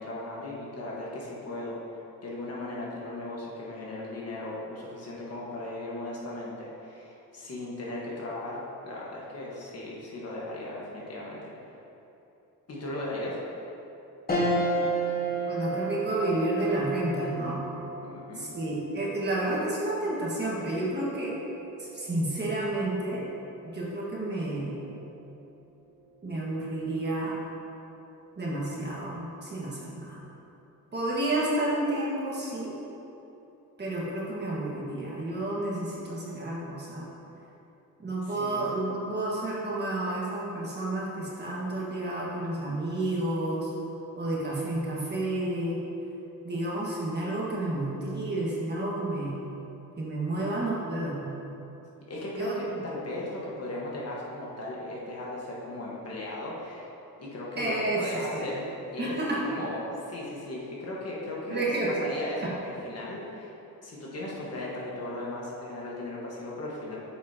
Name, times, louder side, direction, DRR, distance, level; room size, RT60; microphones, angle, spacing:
voice 1, 0.0-1.8 2.2-11.5 12.7-13.4 18.0-18.4 38.3-38.7 50.4-50.6 52.1-56.9 57.2-59.1 59.4-61.7 62.0-63.5 63.8-67.0, left 1 dB, 45° left, -5 dB, 1.4 m, -37 dB
sound 1, 14.3-23.9 24.4-24.5 25.8-26.2, right 1 dB, 25° left, 1.2 m, -34 dB
voice 2, 15.5-17.6 18.3-21.3 21.8-23.2 23.6-24.8 26.2-27.3 28.4-30.2 30.9-32.7 33.8-37.1 38.0-43.7 44.1-45.8 46.4-49.4 50.0-51.3 52.3-52.6 57.6-58.4 59.0-59.4 61.5-62.1 62.4-62.5, right 2 dB, 30° right, -6 dB, 1.6 m, -30 dB
8.0 x 6.3 x 2.8 m, 2.9 s
cardioid pair, 115°, 34 cm